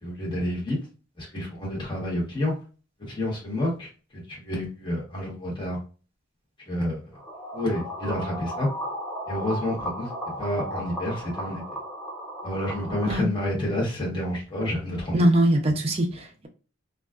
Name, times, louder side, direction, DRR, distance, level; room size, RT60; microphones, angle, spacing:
voice 1, 0.0-0.8 1.2-2.5 3.1-3.9 4.3-5.8 6.7-7.0 7.5-8.7 9.3-10.1 10.4-11.6 12.4-15.2, left 1 dB, 25° left, -5 dB, 1.1 m, -29 dB
sound 1, 7.1-13.2, equal, ahead, 0.8 m, -35 dB
voice 2, 15.1-16.5, right 1 dB, 30° right, 3 dB, 0.5 m, -22 dB
2.4 x 2.2 x 2.3 m, 0.36 s
head